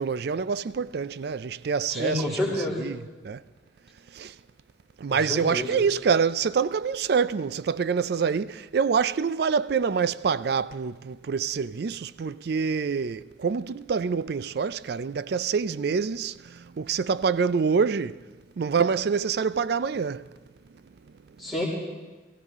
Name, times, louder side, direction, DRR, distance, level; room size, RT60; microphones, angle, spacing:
voice 1, 0.0-2.4 2.8-3.4 4.1-4.3 5.0-18.2 18.6-20.3, right 6 dB, 55° right, 0.4 m, -26 dB
voice 2, 1.9-2.8 5.1-5.7 21.4-21.6, left 1 dB, ahead, 4.7 m, -29 dB
22.5 x 15.5 x 3.6 m
head